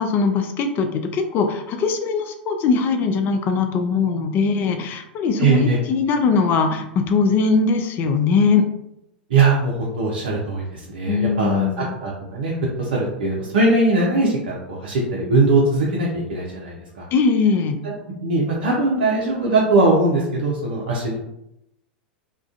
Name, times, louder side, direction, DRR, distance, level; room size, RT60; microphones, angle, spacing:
voice 1, 0.0-8.6 11.1-11.9 17.1-17.8, left 5 dB, 40° left, 6 dB, 0.3 m, -20 dB
voice 2, 5.4-5.8 9.3-17.1 17.8-17.9 18.2-21.2, right 3 dB, 70° right, -3 dB, 0.5 m, -20 dB
2.3 x 2.2 x 2.4 m, 0.82 s
hypercardioid pair, 90°, 6 cm